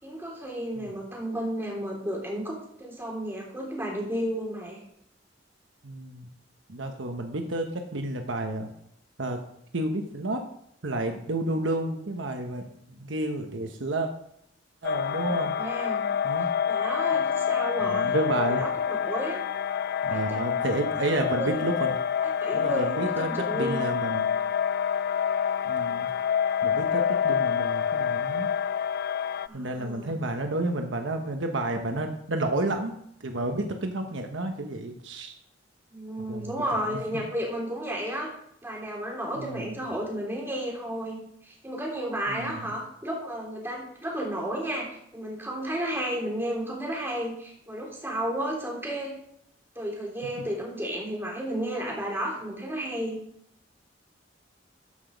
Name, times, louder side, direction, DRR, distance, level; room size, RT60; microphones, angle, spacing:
voice 1, 0.0-4.8 15.3-16.1 16.7-19.4 20.0-20.6 21.4-21.6 22.2-23.8 29.5-30.1 35.9-38.3 38.6-49.1 49.7-53.2, right 1 dB, 10° right, -3 dB, 3.3 m, -33 dB
voice 2, 5.8-6.3 6.7-8.7 9.2-9.4 9.7-10.5 10.8-14.1 14.8-15.6 16.2-16.5 17.1-17.2 17.8-18.6 20.0-22.0 22.5-24.4 25.6-26.1 26.6-28.5 29.5-35.3 36.3-36.6 36.9-37.0 39.4-39.7 42.3-42.7, right 1 dB, 80° right, 5 dB, 1.2 m, -31 dB
sound 1, 14.8-29.5, left 8 dB, 55° left, 0.4 m, -27 dB
14.0 x 6.1 x 5.2 m, 0.73 s
head